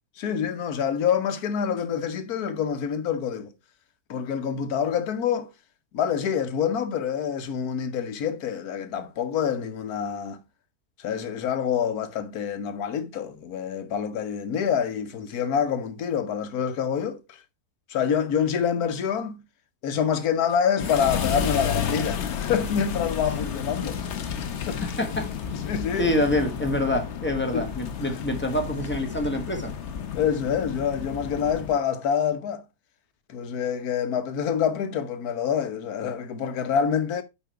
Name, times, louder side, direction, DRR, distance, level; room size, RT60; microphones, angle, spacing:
voice 1, 0.2-3.5 4.1-5.5 5.9-10.4 11.0-17.4 17.9-19.4 19.8-24.0 24.3-24.8 25.5-26.1 27.5-27.7 30.1-32.6 33.3-37.2, left 7 dB, 80° left, 1.4 m, -26 dB
sound 1, 20.8-31.8, left 7 dB, 55° left, 1.0 m, -31 dB
voice 2, 24.6-25.3 26.0-29.7, left 1 dB, 10° left, 1.4 m, -26 dB
8.5 x 5.0 x 3.4 m
omnidirectional pair, 1.6 m